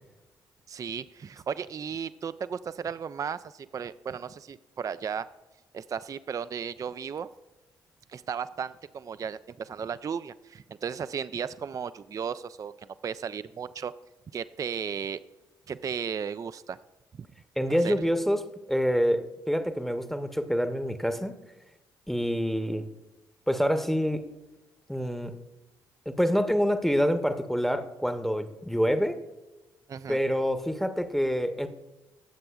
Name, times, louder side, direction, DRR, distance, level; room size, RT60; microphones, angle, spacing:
voice 1, 0.7-5.3 5.7-7.3 8.1-12.7 13.0-13.9 14.3-15.2 15.7-16.8 17.2-17.3 17.8-17.9 29.9-30.2, right 7 dB, 30° right, 14 dB, 0.3 m, -35 dB
voice 2, 17.6-18.4 18.7-21.3 22.1-22.8 23.5-24.2 24.9-25.3 26.1-29.2 30.1-31.7, equal, ahead, 8 dB, 0.9 m, -26 dB
17.5 x 7.6 x 2.3 m, 1.1 s
figure-of-eight pair, 45°, 12 cm